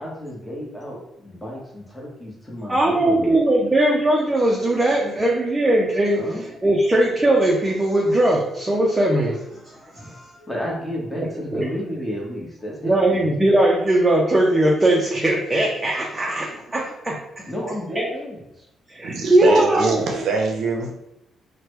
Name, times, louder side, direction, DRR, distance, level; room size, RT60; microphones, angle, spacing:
voice 1, 0.0-3.4 6.1-6.5 9.9-10.1 10.4-13.3 17.5-18.7, equal, 10° left, -4 dB, 1.1 m, -32 dB
voice 2, 2.7-6.2 6.6-9.6 9.9-10.3 11.5-11.7 12.8-17.4 17.9-18.1 18.9-20.0, right 1 dB, 15° right, -2 dB, 0.5 m, -19 dB
voice 3, 19.0-20.9, right 4 dB, 70° right, 1 dB, 0.6 m, -23 dB
3.1 x 2.1 x 3.0 m, 0.84 s
cardioid pair, 90°, 0 cm